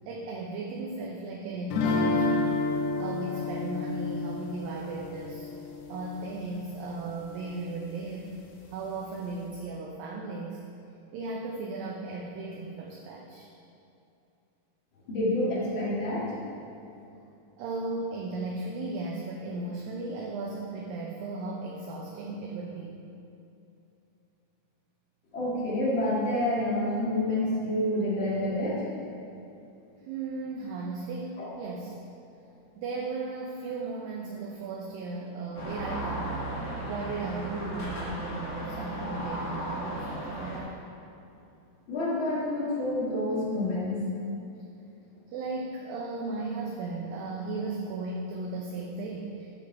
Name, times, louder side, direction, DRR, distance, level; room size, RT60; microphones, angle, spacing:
voice 1, 0.1-2.6 3.0-5.5 5.9-8.3 8.7-10.6 11.1-13.5 17.6-23.0 30.1-31.9 32.8-36.4 36.9-40.8 45.3-49.5, right 3 dB, 75° right, -1 dB, 2.2 m, -36 dB
sound 1, 1.7-6.6, left 3 dB, 90° left, 3.0 m, -30 dB
voice 2, 15.1-16.3 25.3-28.8 31.4-31.5 41.9-44.0, left 1 dB, 40° left, -7 dB, 2.2 m, -28 dB
sound 2, 35.5-40.6, right 1 dB, 70° left, 0.8 m, -35 dB
13.0 x 5.7 x 4.6 m, 2.7 s
omnidirectional pair, 4.7 m